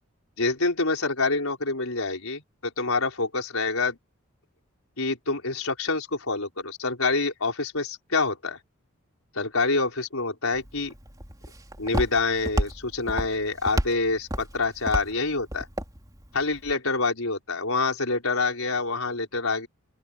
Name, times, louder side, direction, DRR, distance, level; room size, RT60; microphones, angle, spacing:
voice 1, 0.4-4.0 5.0-8.6 9.3-10.9 11.8-15.7 16.3-19.7, left 3 dB, 75° left, 4.7 m, -26 dB
Walk footsteps, 10.5-16.7, equal, 15° right, 3.6 m, -32 dB
open air
head